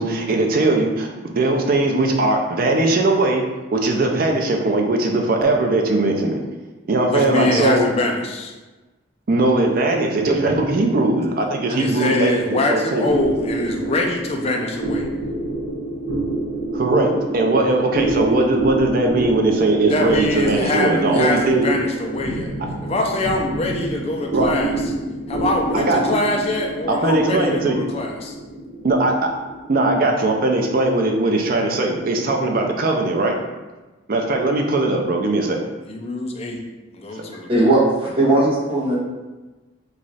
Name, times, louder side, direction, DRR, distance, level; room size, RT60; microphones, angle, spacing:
voice 1, 0.0-3.4 3.7-6.4 6.9-7.9 9.3-13.1 16.7-21.7 24.3-24.5 25.7-26.0 26.9-27.8 28.8-29.3 29.7-33.3 34.1-35.6, right 2 dB, 50° right, 2 dB, 0.4 m, -19 dB
voice 2, 7.0-8.5 11.8-15.1 19.7-22.5 22.8-24.8 25.3-28.4 35.9-36.6 36.9-37.5, left 2 dB, 30° left, 1 dB, 0.4 m, -23 dB
sound 1, 13.0-31.8, right 2 dB, 65° right, 0.9 m, -28 dB
voice 3, 37.5-39.0, right 2 dB, 30° right, -5 dB, 0.8 m, -17 dB
3.1 x 2.4 x 4.0 m, 1.2 s
head